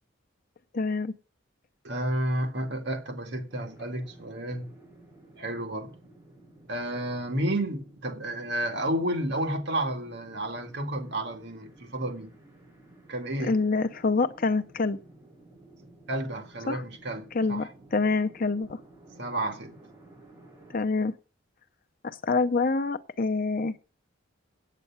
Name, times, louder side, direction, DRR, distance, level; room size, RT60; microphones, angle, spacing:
voice 1, 0.7-1.1 13.4-15.0 16.7-16.8 17.3-18.8 20.7-21.2 22.0-23.8, left 3 dB, 45° left, 0.7 m, -26 dB
voice 2, 1.8-4.7 5.4-5.9 6.7-12.3 13.1-13.6 16.1-17.7 19.2-19.7, right 1 dB, 60° right, 2.1 m, -31 dB
sound 1, 3.5-20.8, right 2 dB, 15° right, 7.5 m, -54 dB
9.0 x 8.4 x 7.0 m
head